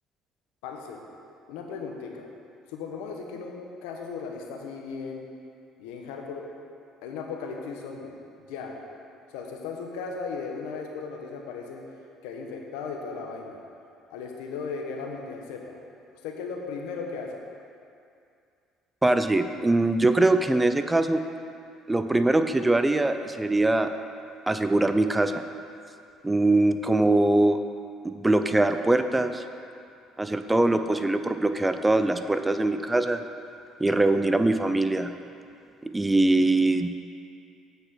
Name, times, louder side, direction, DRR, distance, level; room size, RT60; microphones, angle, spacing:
voice 1, 0.6-1.0 1.5-2.3 2.7-5.3 5.8-6.5 7.0-8.1 8.5-8.7 9.3-11.8 12.2-13.6 14.1-15.8 16.2-17.4, left 5 dB, 85° left, 2 dB, 1.1 m, -36 dB
voice 2, 19.0-21.2 21.9-23.9 24.5-25.4 26.2-27.6 28.0-29.4 30.2-33.2 33.8-35.1 35.8-36.9, right 2 dB, 15° right, 9 dB, 0.5 m, -22 dB
8.5 x 5.3 x 6.0 m, 2.4 s
supercardioid pair, 80°, 0 cm